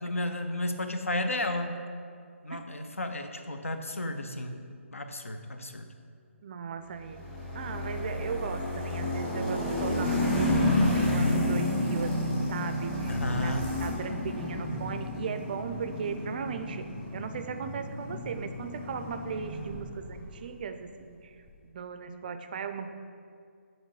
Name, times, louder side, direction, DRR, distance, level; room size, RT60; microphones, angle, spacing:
voice 1, 0.0-1.8 2.4-4.6 4.9-5.9 13.1-13.7, left 1 dB, 85° left, 6 dB, 0.5 m, -33 dB
voice 2, 6.4-13.5 13.8-16.9 17.1-21.3 21.6-22.9, right 6 dB, 40° right, 8 dB, 0.3 m, -37 dB
sound 1, 7.1-20.2, left 1 dB, 10° left, 0.9 m, -30 dB
6.5 x 3.1 x 4.8 m, 2.3 s
figure-of-eight pair, 140°, 7 cm